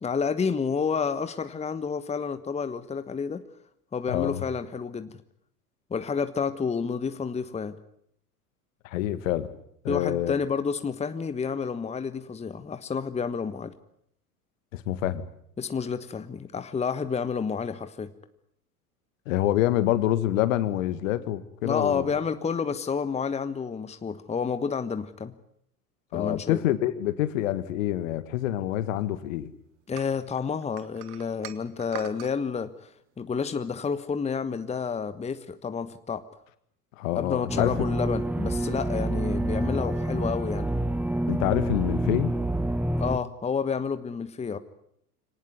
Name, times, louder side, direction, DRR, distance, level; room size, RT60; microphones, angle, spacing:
voice 1, 0.0-3.4 3.9-5.2 5.9-7.8 9.9-13.7 15.6-18.1 21.6-25.3 26.1-26.6 29.9-32.9 33.2-36.2 37.1-40.7 43.0-44.6, left 6 dB, 15° left, 11 dB, 1.3 m, -30 dB
voice 2, 4.1-4.4 8.8-9.5 9.8-10.4 14.7-15.3 19.3-22.1 26.1-29.5 37.0-37.8 41.3-42.3, left 13 dB, 55° left, 13 dB, 1.8 m, -26 dB
sound 1, 30.0-32.4, right 13 dB, 55° right, 2.0 m, -42 dB
sound 2, 37.5-43.2, right 1 dB, 5° right, 1.0 m, -28 dB
25.5 x 18.5 x 9.5 m, 0.71 s
figure-of-eight pair, 80°, 46 cm